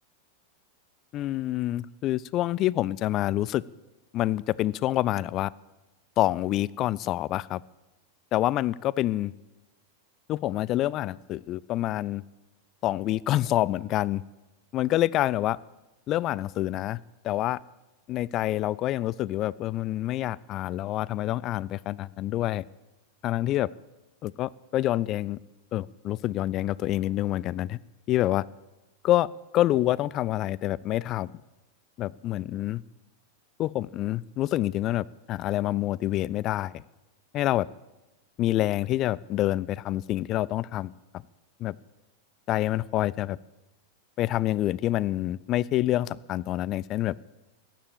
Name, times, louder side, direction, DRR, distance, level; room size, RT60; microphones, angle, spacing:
voice 1, 1.1-3.6 4.1-5.5 6.2-7.6 8.3-9.3 10.3-12.2 12.8-14.2 14.7-15.6 16.1-17.0 17.2-17.6 18.1-22.6 23.2-23.7 24.2-25.4 25.7-27.8 28.1-28.4 29.0-29.3 29.5-31.3 32.0-32.8 33.6-36.8 37.3-37.7 38.4-40.9 41.6-41.8 42.5-43.4 44.2-47.1, left 14 dB, 35° left, 22 dB, 0.4 m, -27 dB
15.5 x 10.0 x 8.7 m, 1.1 s
figure-of-eight pair, 90°, 0 cm